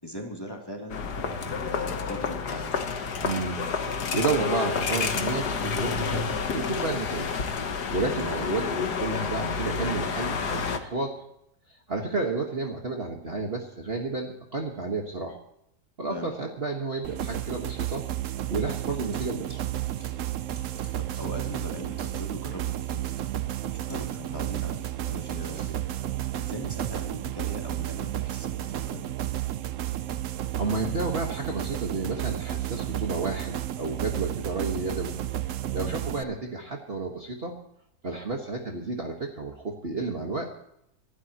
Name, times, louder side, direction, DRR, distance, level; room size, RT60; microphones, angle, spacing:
voice 1, 0.0-2.8 8.0-8.3 16.1-16.3 21.0-23.0 23.7-25.9 26.4-29.1 35.8-36.1, equal, 15° left, 0 dB, 3.0 m, -40 dB
sound 1, 0.9-10.8, left 5 dB, 70° left, 1.8 m, -29 dB
voice 2, 3.2-7.3 7.9-11.2 11.9-15.4 16.0-18.0 18.5-19.6 30.6-35.2 35.7-37.6 38.0-40.5, right 3 dB, 35° right, 1 dB, 1.8 m, -31 dB
sound 2, 17.0-36.2, right 13 dB, 60° right, 0.9 m, -32 dB
sound 3, 18.6-21.7 22.0-22.2 22.6-25.8, equal, 5° right, 6.7 m, -54 dB
25.0 x 12.5 x 3.0 m, 0.78 s
omnidirectional pair, 1.8 m